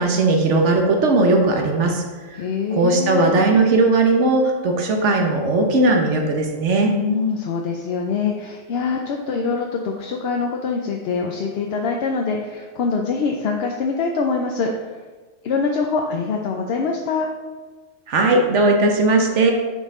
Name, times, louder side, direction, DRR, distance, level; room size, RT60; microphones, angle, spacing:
voice 1, 0.0-2.0 2.3-2.4 2.7-7.0 18.1-19.5, right 2 dB, 65° right, 2 dB, 1.1 m, -18 dB
voice 2, 2.3-3.4 7.0-15.0 15.4-17.3, left 4 dB, 60° left, 2 dB, 0.7 m, -24 dB
8.0 x 4.1 x 3.7 m, 1.4 s
omnidirectional pair, 1.4 m